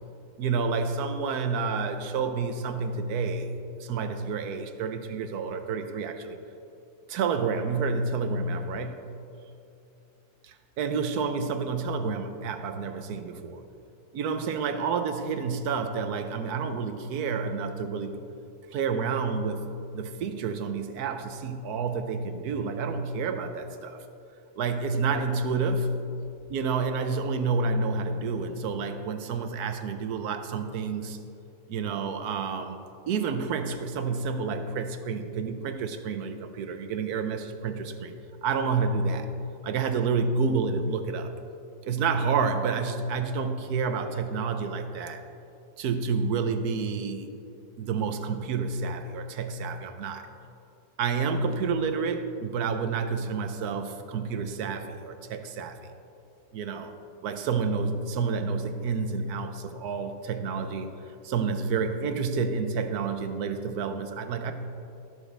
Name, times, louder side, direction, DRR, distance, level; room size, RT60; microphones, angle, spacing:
voice 1, 0.4-3.5 3.8-6.4 7.1-9.1 10.4-13.6 14.1-18.2 18.7-19.6 19.9-24.0 24.6-26.0 26.5-31.2 31.7-32.8 33.1-38.1 38.4-39.3 39.6-41.3 41.9-45.2 45.8-47.4 47.8-50.3 51.0-55.8 56.5-56.9 57.2-60.9 61.2-64.5, right 5 dB, 80° right, 8 dB, 1.3 m, -29 dB
19.0 x 6.6 x 3.3 m, 2.7 s
omnidirectional pair, 1.7 m